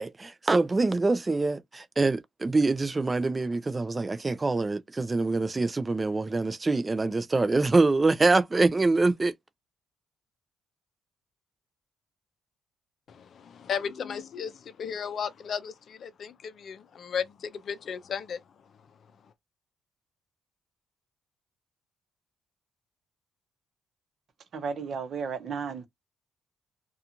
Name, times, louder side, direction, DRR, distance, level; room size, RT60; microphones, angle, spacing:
voice 1, 0.0-9.3, right 3 dB, 25° right, 0.4 m, -25 dB
voice 2, 13.1-18.4, left 7 dB, 55° left, 0.5 m, -35 dB
voice 3, 24.5-25.9, right 5 dB, 55° right, 0.8 m, -33 dB
2.4 x 2.4 x 2.8 m
cardioid pair, 90°, 0 cm